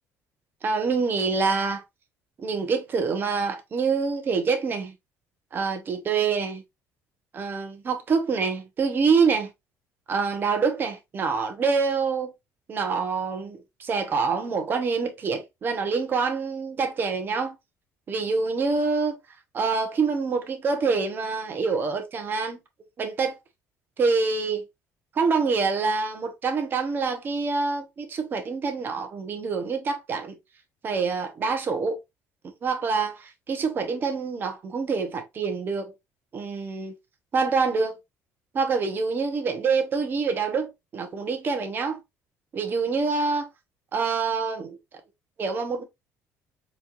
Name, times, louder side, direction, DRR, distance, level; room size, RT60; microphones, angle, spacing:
voice 1, 0.6-1.8 2.4-4.9 5.5-6.6 7.3-9.5 10.1-12.3 12.7-17.5 18.1-19.2 19.5-22.6 23.0-23.4 24.0-24.6 25.2-30.4 30.8-32.0 32.6-35.9 36.3-36.9 37.3-38.0 38.5-42.0 42.5-43.5 43.9-44.8 45.4-45.8, right 4 dB, 40° right, 1.0 m, -26 dB
4.2 x 3.0 x 2.5 m
cardioid pair, 120°, 6 cm